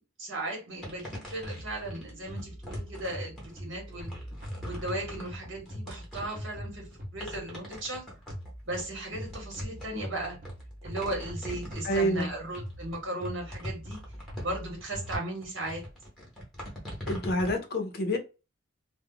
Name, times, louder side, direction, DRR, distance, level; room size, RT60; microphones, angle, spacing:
voice 1, 0.0-4.1 4.6-6.9 7.1-8.1 8.7-10.4 10.8-14.0 14.4-15.8, right 1 dB, 60° right, 1.1 m, -36 dB
sound 1, 0.8-17.6, equal, ahead, 0.9 m, -43 dB
sound 2, 1.4-7.5 8.3-15.1, equal, 40° right, 0.7 m, -42 dB
voice 2, 11.8-12.3 17.1-18.2, equal, 50° left, 0.5 m, -28 dB
2.3 x 2.0 x 3.6 m
head